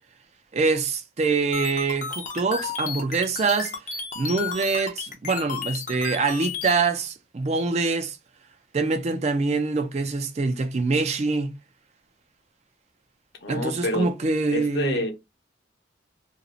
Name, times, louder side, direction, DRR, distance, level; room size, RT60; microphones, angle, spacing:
voice 1, 0.5-3.7 4.2-8.2 8.7-11.5 13.5-15.0, right 3 dB, 35° right, 0.4 m, -25 dB
sound 1, 1.5-6.7, left 5 dB, 40° left, 0.6 m, -33 dB
voice 2, 13.4-14.1 14.5-15.1, left 1 dB, 65° left, 0.9 m, -27 dB
2.5 x 2.4 x 2.9 m
head